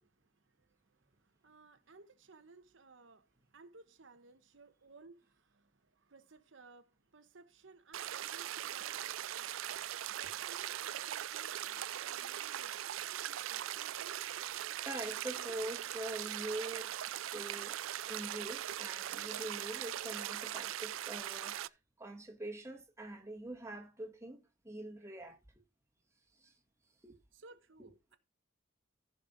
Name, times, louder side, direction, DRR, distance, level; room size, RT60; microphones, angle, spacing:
voice 1, 0.0-12.9 13.2-14.3 27.3-28.2, right 3 dB, 75° right, 1.1 m, -60 dB
sound 1, 7.9-21.7, right 12 dB, 90° right, 0.4 m, -40 dB
voice 2, 14.8-17.0 17.3-17.8 18.1-25.6 26.4-26.5 27.0-27.2 27.8-27.9, right 1 dB, 15° right, 1.6 m, -44 dB
15.0 x 5.4 x 4.0 m
head